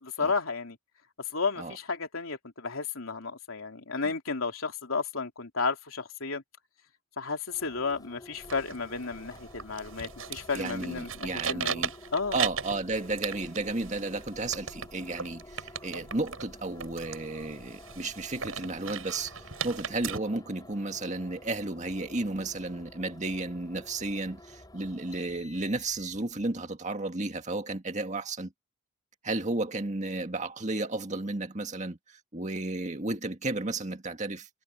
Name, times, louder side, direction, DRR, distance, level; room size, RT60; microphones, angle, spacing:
voice 1, 0.0-0.8 1.3-6.4 7.2-12.4, left 4 dB, 75° left, 3.1 m, -33 dB
sound 1, 7.5-26.5, left 1 dB, 20° left, 7.1 m, -51 dB
sound 2, 8.4-20.2, right 7 dB, 75° right, 7.7 m, -38 dB
voice 2, 10.5-11.9 12.3-19.3 19.6-28.5 29.2-34.5, right 2 dB, 35° right, 1.9 m, -33 dB
head